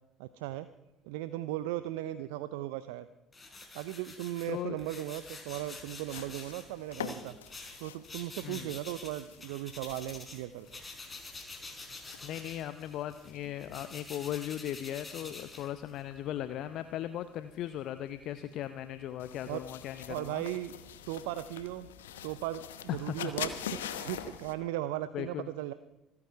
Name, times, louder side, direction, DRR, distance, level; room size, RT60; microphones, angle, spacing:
voice 1, 0.2-0.7 1.0-3.1 3.7-7.4 7.8-10.8 19.5-19.6 20.1-20.7 21.1-21.9 22.2-25.7, right 14 dB, 70° right, 14 dB, 0.5 m, -37 dB
sound 1, 3.3-10.4 10.7-16.1, left 3 dB, 25° left, 4.1 m, -47 dB
voice 2, 4.5-4.8 8.4-8.7 12.2-20.4 22.9-23.3 25.1-25.5, left 12 dB, 60° left, 12 dB, 0.6 m, -38 dB
sound 2, 5.2-24.5, left 9 dB, 80° left, 0.9 m, -46 dB
26.5 x 9.7 x 4.6 m, 0.94 s
figure-of-eight pair, 55°, 0 cm